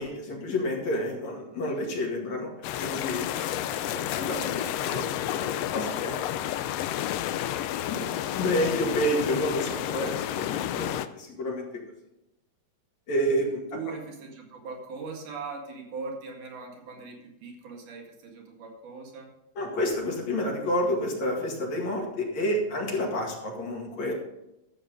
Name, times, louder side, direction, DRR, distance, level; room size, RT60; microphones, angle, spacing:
voice 1, 0.0-2.5 2.8-3.3 3.8-6.1 7.9-8.0 8.2-11.8 13.1-13.8 19.6-24.1, equal, 65° left, -1 dB, 3.4 m, -29 dB
sound 1, 2.6-11.1, left 12 dB, 85° left, 1.4 m, -31 dB
voice 2, 13.7-19.3, right 4 dB, 85° right, 1 dB, 3.5 m, -40 dB
12.5 x 7.5 x 5.2 m, 0.87 s
omnidirectional pair, 3.5 m